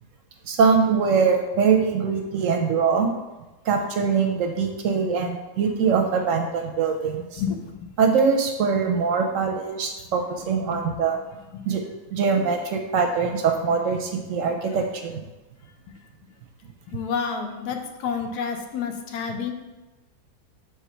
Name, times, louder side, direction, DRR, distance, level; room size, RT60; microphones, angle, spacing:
voice 1, 0.5-3.1 3.7-7.4 8.0-11.2 11.7-11.8 12.1-15.2, right 5 dB, 65° right, 4 dB, 0.8 m, -22 dB
voice 2, 7.4-7.9 10.7-11.0 11.5-11.6 14.7-14.8 16.9-19.5, left 6 dB, 80° left, 5 dB, 1.2 m, -30 dB
4.9 x 3.5 x 5.5 m, 1.1 s
omnidirectional pair, 1.6 m